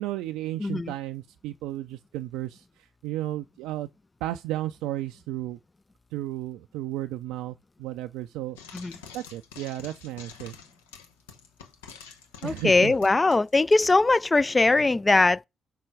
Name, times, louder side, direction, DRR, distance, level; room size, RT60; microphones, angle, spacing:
voice 1, 0.0-3.9 4.2-5.6 6.1-8.6 9.1-10.5 12.4-12.9, right 14 dB, 70° right, 0.3 m, -33 dB
voice 2, 0.6-0.9 8.7-8.9 12.4-15.4, left 3 dB, 25° left, 0.3 m, -21 dB
Frying (food), 8.6-14.0, left 6 dB, 80° left, 0.8 m, -47 dB
6.0 x 5.7 x 4.8 m
figure-of-eight pair, 40°, 0 cm